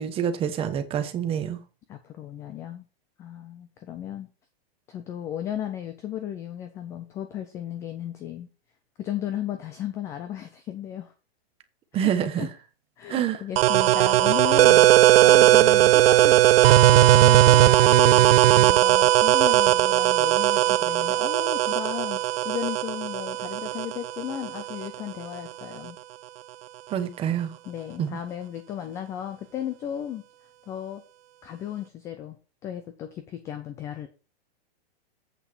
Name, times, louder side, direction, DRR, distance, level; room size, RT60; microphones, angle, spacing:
voice 1, 0.0-1.6 11.9-12.5 13.1-13.4 26.9-27.6 28.0-28.2, right 9 dB, 20° right, 1.1 m, -27 dB
voice 2, 1.9-2.9 3.2-4.3 4.9-8.5 9.0-11.1 11.9-12.1 12.4-12.5 13.0-26.0 27.7-30.2 30.7-31.0 31.4-32.4 32.6-34.1, left 10 dB, 10° left, 0.3 m, -35 dB
sound 1, 13.6-24.9, right 14 dB, 70° right, 0.5 m, -18 dB
8.2 x 5.7 x 6.0 m
hypercardioid pair, 150°, 31 cm